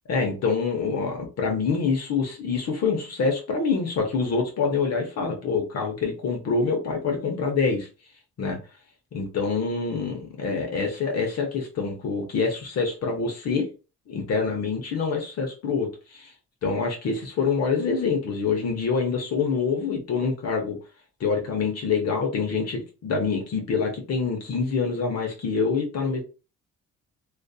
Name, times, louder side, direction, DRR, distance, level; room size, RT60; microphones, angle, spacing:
voice 1, 0.1-7.9 8.4-8.6 9.1-13.7 14.1-16.3 16.6-20.8 21.2-26.2, left 5 dB, 55° left, 2 dB, 0.8 m, -26 dB
2.5 x 2.4 x 2.3 m, 0.33 s
cardioid pair, 90°, 30 cm